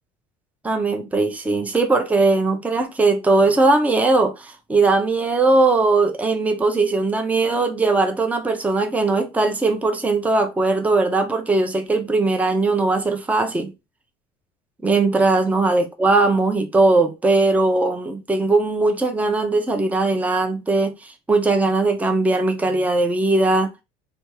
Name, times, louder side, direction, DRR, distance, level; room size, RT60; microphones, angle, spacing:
voice 1, 0.6-13.7 14.8-23.7, right 3 dB, 10° right, 0.6 m, -19 dB
3.4 x 2.8 x 3.0 m
cardioid pair, 120°, 17 cm